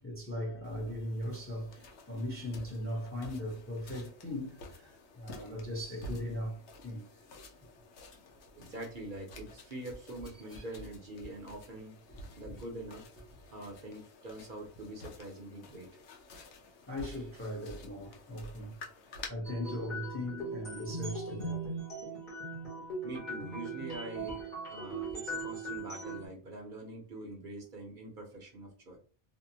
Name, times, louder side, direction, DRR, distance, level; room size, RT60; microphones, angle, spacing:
voice 1, 0.0-7.0 10.5-10.7 16.9-18.7 19.3-21.7 24.2-24.8, left 1 dB, 15° left, 0.6 m, -39 dB
sound 1, 0.6-19.3, left 2 dB, 80° left, 0.9 m, -51 dB
voice 2, 8.6-12.0 12.4-13.1 13.5-15.9 23.0-29.0, right 1 dB, 55° right, 0.8 m, -44 dB
sound 2, 19.4-26.3, right 2 dB, 45° left, 1.1 m, -39 dB
2.7 x 2.0 x 2.7 m
omnidirectional pair, 1.1 m